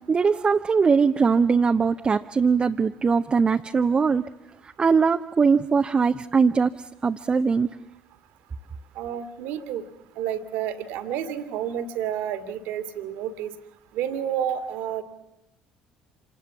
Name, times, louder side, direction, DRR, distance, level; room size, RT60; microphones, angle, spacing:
voice 1, 0.0-4.3 4.6-7.7, right 5 dB, 30° right, 6 dB, 0.8 m, -21 dB
voice 2, 9.0-9.8 10.2-13.5 13.9-15.0, right 9 dB, 60° right, 11 dB, 1.9 m, -30 dB
26.5 x 19.5 x 7.2 m, 0.90 s
figure-of-eight pair, 55°, 3 cm